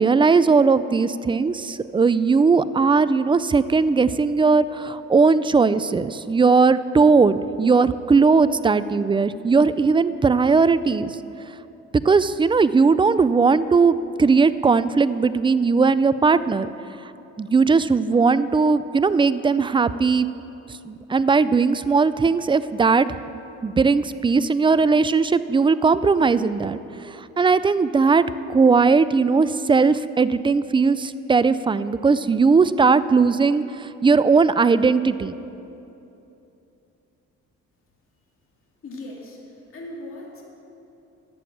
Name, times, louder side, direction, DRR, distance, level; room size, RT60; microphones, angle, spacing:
voice 1, 0.0-11.2 12.0-16.7 17.4-20.3 20.8-23.2 23.6-26.8 27.1-35.3, right 4 dB, 15° right, 14 dB, 0.3 m, -18 dB
voice 2, 38.8-40.4, left 1 dB, 45° left, -2 dB, 2.5 m, -38 dB
11.5 x 7.8 x 7.3 m, 2.9 s
cardioid pair, 90°, 30 cm